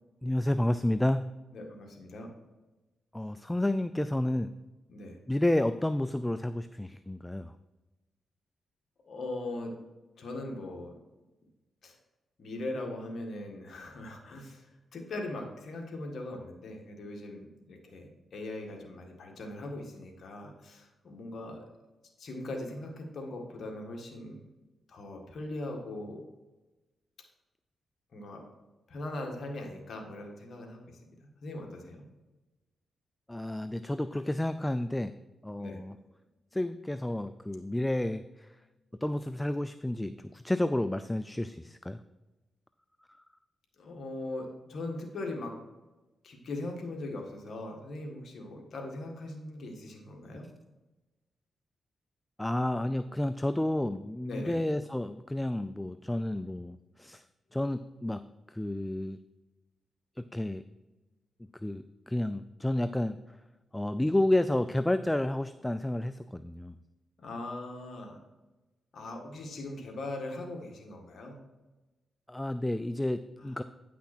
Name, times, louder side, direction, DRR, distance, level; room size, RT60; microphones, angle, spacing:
voice 1, 0.2-1.3 3.1-4.5 5.3-7.5 33.3-35.1 35.4-35.9 36.5-38.2 39.0-42.0 52.4-57.2 57.5-58.2 58.5-59.2 60.2-60.6 61.6-63.2 63.7-66.7 72.3-73.6, left 1 dB, 10° left, 12 dB, 0.3 m, -30 dB
voice 2, 1.5-2.3 4.9-5.2 9.1-9.7 10.2-10.9 11.8-12.0 12.4-14.7 14.9-21.6 22.2-24.4 24.9-26.2 28.1-28.5 28.9-30.9 31.2-32.1 35.6-35.8 43.8-45.5 46.2-50.5 54.3-54.6 67.2-68.2 68.9-71.4 73.4-73.6, left 2 dB, 65° left, 1 dB, 1.8 m, -40 dB
9.7 x 5.9 x 4.3 m, 1.1 s
cardioid pair, 65°, 0 cm